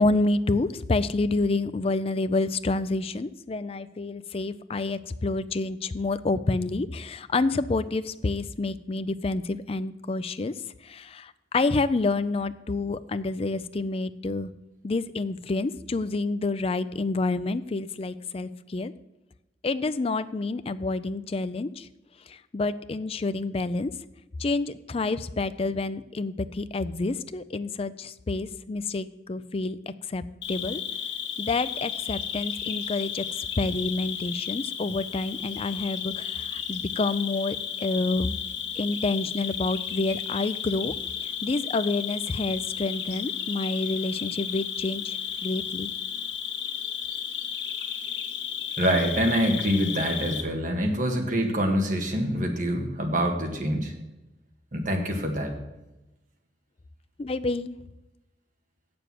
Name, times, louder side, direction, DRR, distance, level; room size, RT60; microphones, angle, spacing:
voice 1, 0.0-10.5 10.8-14.5 14.8-18.9 19.6-21.9 22.3-23.9 24.4-29.8 30.1-30.8 31.4-33.2 33.6-38.4 38.8-40.9 41.4-45.2 45.4-45.9 57.2-57.8, left 3 dB, 35° left, 13 dB, 0.4 m, -28 dB
Cricket, 30.4-50.4, left 8 dB, 90° left, 1.3 m, -33 dB
voice 2, 48.8-53.9 54.7-55.5, equal, 45° right, 3 dB, 1.8 m, -25 dB
7.9 x 6.9 x 7.6 m, 0.99 s
head